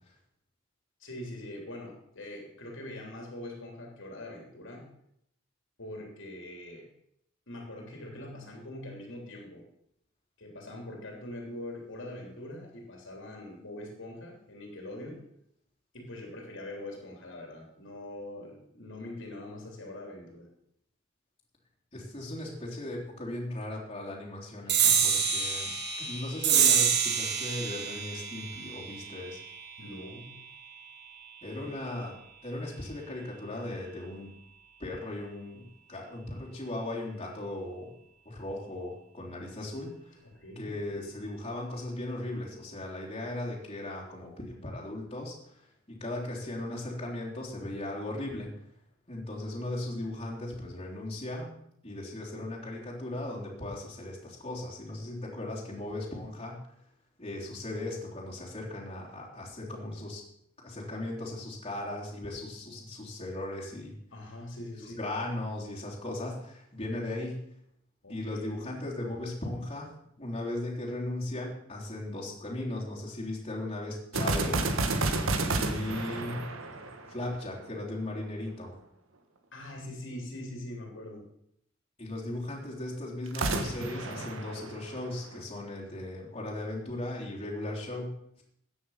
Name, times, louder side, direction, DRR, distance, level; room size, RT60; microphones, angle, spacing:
voice 1, 1.0-4.9 5.8-6.9 7.5-9.6 10.4-15.2 15.9-20.5 29.8-30.4 31.6-31.8 40.2-40.7 64.1-65.0 68.0-68.8 75.6-76.1 79.5-81.2, left 1 dB, 65° left, 1 dB, 3.2 m, -43 dB
voice 2, 21.9-25.7 26.0-29.4 31.4-32.1 32.4-34.3 34.8-37.9 38.2-40.1 40.5-45.5 45.9-48.5 49.1-51.5 51.8-56.6 57.2-60.2 60.6-63.9 64.8-67.4 68.1-69.9 70.2-74.7 75.5-76.5 77.1-78.7 82.0-88.1, left 1 dB, 30° left, -5 dB, 3.4 m, -37 dB
Clang rake double, 24.7-31.5, right 7 dB, 55° right, 1.7 m, -28 dB
sound 1, 74.1-77.6 83.3-85.4, right 2 dB, 70° right, 1.4 m, -30 dB
14.0 x 9.5 x 5.7 m, 0.73 s
head